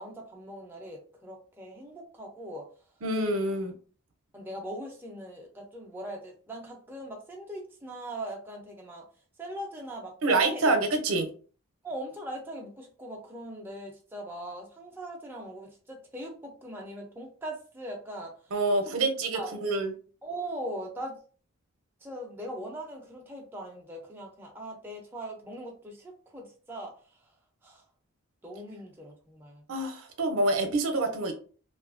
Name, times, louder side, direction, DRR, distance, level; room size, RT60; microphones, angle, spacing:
voice 1, 0.0-2.7 4.3-9.1 9.4-10.1 10.5-10.7 11.8-18.3 18.8-18.9 19.3-19.6 20.2-21.2 22.0-26.9 27.6-27.8 28.4-29.6, right 1 dB, 10° right, 0 dB, 0.4 m, -40 dB
voice 2, 3.0-3.7 10.2-11.3 18.5-19.9 29.7-31.3, right 2 dB, 70° right, 6 dB, 0.6 m, -26 dB
2.6 x 2.3 x 2.5 m, 0.40 s
head